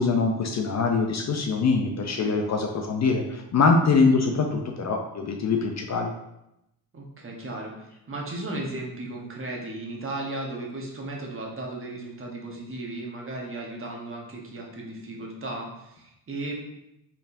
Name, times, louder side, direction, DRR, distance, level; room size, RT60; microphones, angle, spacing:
voice 1, 0.0-6.1, left 4 dB, 40° left, 2 dB, 0.5 m, -23 dB
voice 2, 3.9-4.2 6.9-16.5, right 2 dB, 30° right, -1 dB, 1.0 m, -35 dB
4.4 x 3.5 x 2.6 m, 0.86 s
cardioid pair, 90°, 43 cm